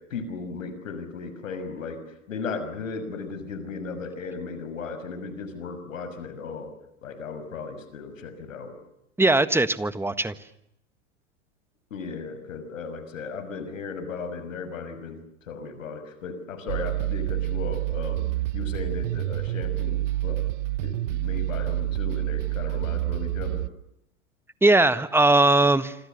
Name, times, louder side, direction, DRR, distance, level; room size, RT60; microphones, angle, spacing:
voice 1, 0.0-6.7 7.0-8.7 11.9-15.2 15.5-18.2 18.5-20.5 20.8-23.6, left 4 dB, 80° left, 11 dB, 6.2 m, -36 dB
voice 2, 9.2-10.3 24.6-26.0, right 2 dB, 5° right, 13 dB, 1.6 m, -19 dB
sound 1, 16.7-23.7, right 15 dB, 65° right, 1.2 m, -28 dB
27.0 x 26.5 x 6.8 m, 0.80 s
hypercardioid pair, 100°, 39 cm